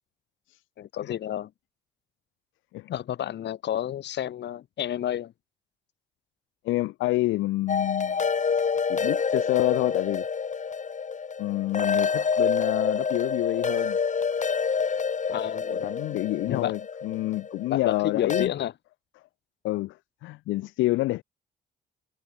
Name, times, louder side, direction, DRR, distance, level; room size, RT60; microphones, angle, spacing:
voice 1, 0.8-1.5 2.9-5.3 15.3-15.9 16.5-16.7 17.7-18.7, left 11 dB, 60° left, 1.5 m, -30 dB
voice 2, 6.6-8.5 8.9-10.2 11.4-14.0 15.7-18.5 19.6-21.2, left 18 dB, 80° left, 1.2 m, -28 dB
sound 1, 7.7-18.5, left 6 dB, 40° left, 1.8 m, -27 dB
supercardioid pair, 55°, 20 cm